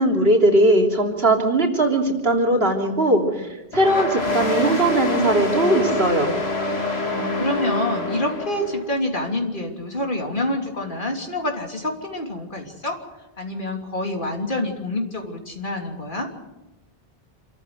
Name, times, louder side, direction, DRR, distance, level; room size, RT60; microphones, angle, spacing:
voice 1, 0.0-6.3, right 1 dB, 70° right, 1 dB, 3.4 m, -19 dB
sound 1, 3.7-8.8, left 2 dB, 90° left, 2.7 m, -26 dB
voice 2, 6.8-13.0 13.4-16.3, left 1 dB, 55° left, 1 dB, 3.3 m, -27 dB
27.5 x 14.0 x 7.9 m, 1.0 s
omnidirectional pair, 1.0 m